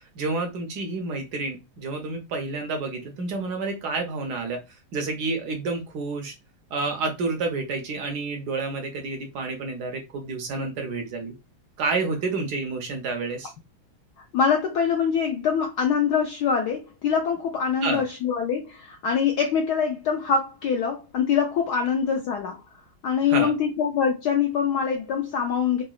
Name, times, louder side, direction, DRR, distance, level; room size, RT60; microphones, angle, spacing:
voice 1, 0.2-4.6 4.9-6.3 6.7-11.3 11.8-13.5 17.8-18.0 23.3-23.5, right 3 dB, 70° right, 1.0 m, -29 dB
voice 2, 14.3-22.6 23.0-25.8, left 7 dB, 80° left, 0.9 m, -24 dB
3.8 x 2.1 x 2.3 m
omnidirectional pair, 2.3 m